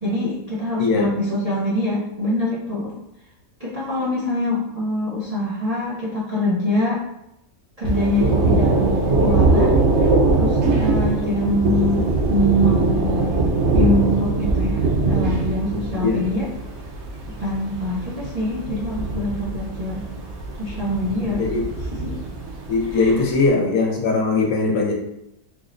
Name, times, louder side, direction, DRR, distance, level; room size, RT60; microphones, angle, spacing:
voice 1, 0.0-2.9 3.6-7.0 7.8-9.9 10.3-13.4 13.7-16.5 17.4-20.1 20.6-21.4 21.9-22.1 22.9-23.1, left 1 dB, 85° right, -8 dB, 0.3 m, -24 dB
voice 2, 0.8-1.1 16.0-16.2 21.4-21.6 22.7-24.9, left 3 dB, 85° left, 1 dB, 1.3 m, -20 dB
Thunder, 7.8-23.4, right 3 dB, 65° right, 0.7 m, -21 dB
3.6 x 2.1 x 3.7 m, 0.85 s
omnidirectional pair, 1.8 m